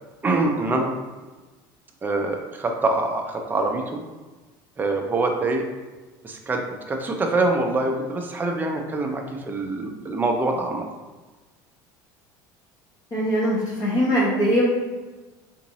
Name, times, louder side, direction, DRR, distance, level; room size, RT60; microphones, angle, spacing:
voice 1, 0.2-0.9 2.0-4.0 4.8-5.6 6.2-10.8, right 2 dB, 20° right, 2 dB, 0.5 m, -24 dB
voice 2, 13.1-14.6, equal, 35° left, -6 dB, 1.0 m, -21 dB
3.9 x 2.5 x 3.0 m, 1.2 s
supercardioid pair, 105°, 10 cm